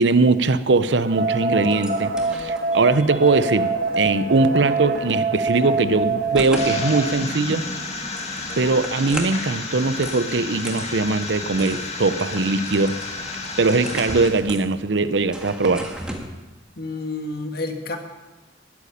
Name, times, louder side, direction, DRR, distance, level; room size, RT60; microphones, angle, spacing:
voice 1, 0.0-3.7 4.0-7.6 8.6-12.9 13.6-15.9, right 3 dB, 90° right, 13 dB, 0.7 m, -20 dB
sound 1, 1.0-7.1, right 3 dB, 55° right, 1.2 m, -24 dB
sound 2, 1.7-16.3, equal, 5° right, 1.8 m, -38 dB
sound 3, 6.5-14.3, left 3 dB, 40° left, 2.0 m, -31 dB
voice 2, 16.8-18.0, left 2 dB, 60° left, 4 dB, 1.7 m, -29 dB
13.5 x 8.4 x 10.0 m, 1.1 s
head